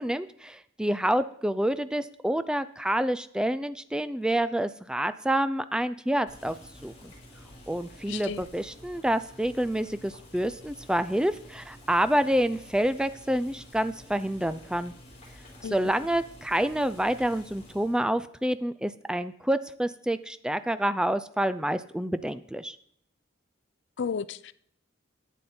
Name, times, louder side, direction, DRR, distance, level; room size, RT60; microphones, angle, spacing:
voice 1, 0.0-6.6 6.8-7.1 7.7-14.9 15.7-22.8, right 1 dB, 5° right, 0.4 m, -28 dB
Boiling, 6.3-18.0, left 1 dB, 35° left, 4.1 m, -50 dB
voice 2, 8.1-8.4 15.6-15.9 24.0-24.5, left 6 dB, 65° left, 0.4 m, -33 dB
11.5 x 9.2 x 4.3 m
head